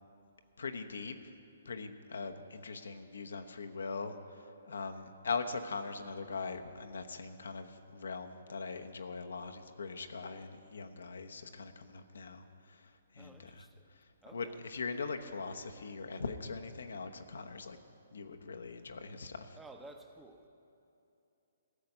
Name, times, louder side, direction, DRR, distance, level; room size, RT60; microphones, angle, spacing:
voice 1, 0.6-1.1 1.6-4.2 4.7-12.8 13.1-13.7 14.3-17.8 18.1-19.6, left 4 dB, 70° left, 6 dB, 1.0 m, -41 dB
voice 2, 13.2-13.8 14.2-14.6 19.6-20.5, right 2 dB, 5° right, 5 dB, 0.9 m, -53 dB
15.0 x 7.8 x 9.7 m, 2.8 s
figure-of-eight pair, 130°, 0 cm